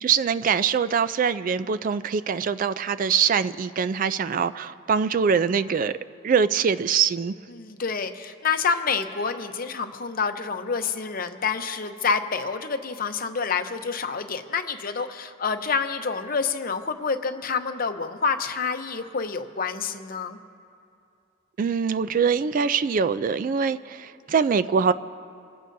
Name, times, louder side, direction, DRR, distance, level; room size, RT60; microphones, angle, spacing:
voice 1, 0.0-5.9 6.2-7.3 21.6-24.9, right 6 dB, 40° right, 14 dB, 0.3 m, -23 dB
voice 2, 7.5-20.4, left 5 dB, 45° left, 7 dB, 0.7 m, -28 dB
27.5 x 15.5 x 2.7 m, 2.5 s
head